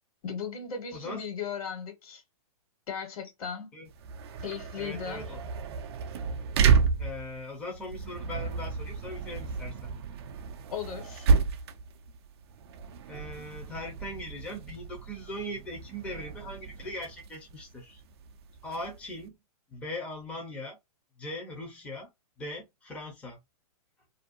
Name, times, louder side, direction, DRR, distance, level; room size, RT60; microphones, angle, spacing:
voice 1, 0.2-2.2 2.9-3.7 4.4-5.3 10.7-11.3, left 6 dB, 70° left, 1.3 m, -37 dB
voice 2, 0.9-1.2 3.7-3.9 4.8-5.4 7.0-10.0 13.1-18.0 18.6-19.4 19.7-20.8 21.2-22.1 22.4-23.4, left 1 dB, 5° left, 0.5 m, -40 dB
sound 1, 3.9-19.2, right 5 dB, 45° right, 0.4 m, -31 dB
2.5 x 2.0 x 2.5 m
hypercardioid pair, 150°, 19 cm